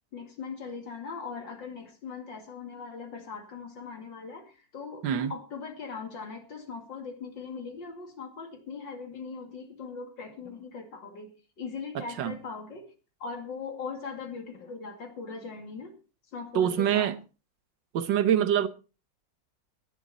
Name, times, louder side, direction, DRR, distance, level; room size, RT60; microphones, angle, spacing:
voice 1, 0.1-11.3 11.6-12.9 13.2-16.0 16.3-17.2, left 5 dB, 85° left, 3.0 m, -40 dB
voice 2, 11.9-12.4 16.5-17.1 17.9-18.7, right 10 dB, 80° right, 1.7 m, -25 dB
16.5 x 11.0 x 4.2 m
omnidirectional pair, 1.9 m